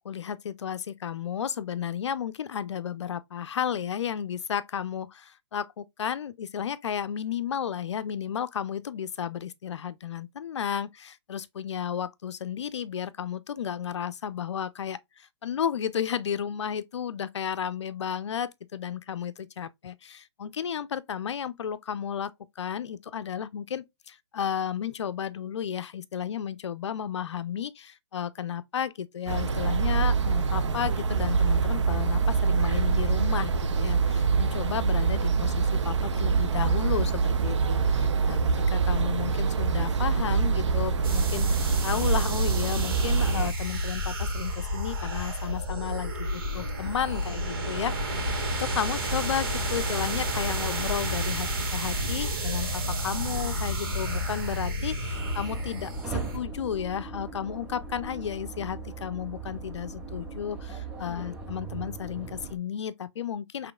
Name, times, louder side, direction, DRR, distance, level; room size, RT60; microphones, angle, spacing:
voice 1, 0.0-38.4 38.7-48.3 48.6-63.7, left 8 dB, 75° left, 0.5 m, -33 dB
sound 1, 29.3-43.5, right 5 dB, 80° right, 0.8 m, -25 dB
sound 2, 41.0-56.4, equal, 50° right, 2.0 m, -31 dB
sound 3, 55.1-62.6, right 4 dB, 5° right, 0.6 m, -39 dB
5.0 x 3.1 x 2.2 m
hypercardioid pair, 155°, 15 cm